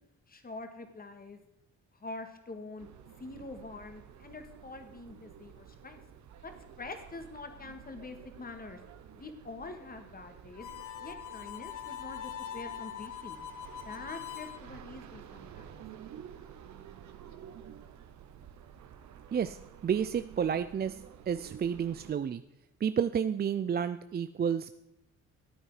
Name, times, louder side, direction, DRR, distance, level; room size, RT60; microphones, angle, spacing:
voice 1, 0.3-1.4 1.9-6.0 6.4-6.5 6.8-8.8 9.1-10.7 11.0-13.4 13.8-15.8, left 3 dB, 30° left, 7 dB, 1.8 m, -45 dB
sound 1, 2.8-22.1, right 9 dB, 70° right, 1.1 m, -51 dB
Harmonica, 10.5-14.6, left 10 dB, 80° left, 1.3 m, -42 dB
voice 2, 19.3-22.4 22.8-24.8, right 7 dB, 35° right, 12 dB, 0.5 m, -31 dB
14.0 x 9.0 x 4.9 m, 0.88 s
cardioid pair, 90°, 30 cm